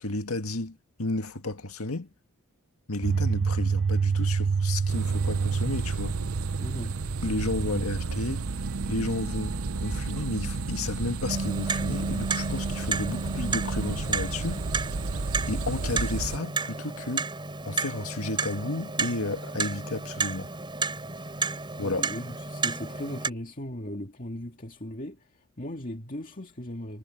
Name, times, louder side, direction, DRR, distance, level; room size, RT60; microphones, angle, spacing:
voice 1, 0.0-2.1 2.9-6.2 7.2-8.4 8.9-14.6 15.5-17.3 17.6-20.5 21.8-22.0, left 2 dB, 70° left, 2.0 m, -32 dB
sound 1, 3.0-13.9, right 5 dB, 50° right, 0.5 m, -30 dB
sound 2, 4.9-16.4, right 3 dB, 65° right, 0.9 m, -33 dB
voice 2, 6.6-7.0 21.4-27.0, left 1 dB, 35° left, 2.2 m, -38 dB
Clock, 11.3-23.3, right 4 dB, 20° right, 3.8 m, -32 dB
head